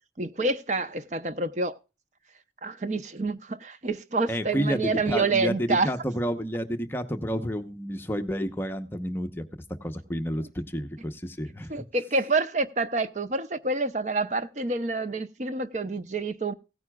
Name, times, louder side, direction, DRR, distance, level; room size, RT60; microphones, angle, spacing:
voice 1, 0.2-1.8 2.6-5.9 11.7-16.5, right 3 dB, 40° right, 0.7 m, -28 dB
voice 2, 4.3-9.4 9.8-11.7, equal, 10° left, 0.8 m, -30 dB
17.0 x 9.5 x 2.3 m
head